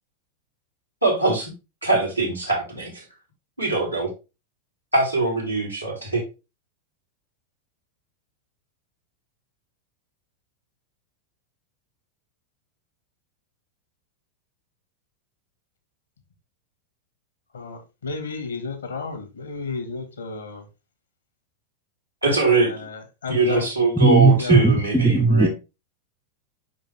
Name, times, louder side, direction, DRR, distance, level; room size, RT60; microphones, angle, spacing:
voice 1, 1.0-1.5 1.8-3.0 3.6-4.1 4.9-6.2 22.2-22.7 23.3-25.5, right 3 dB, 90° right, 2.6 m, -22 dB
voice 2, 17.5-20.7 22.5-23.7 24.4-24.8, left 4 dB, 70° left, 1.6 m, -33 dB
voice 3, 24.0-25.5, right 3 dB, ahead, 0.7 m, -17 dB
5.5 x 5.2 x 3.3 m
figure-of-eight pair, 90°, 0 cm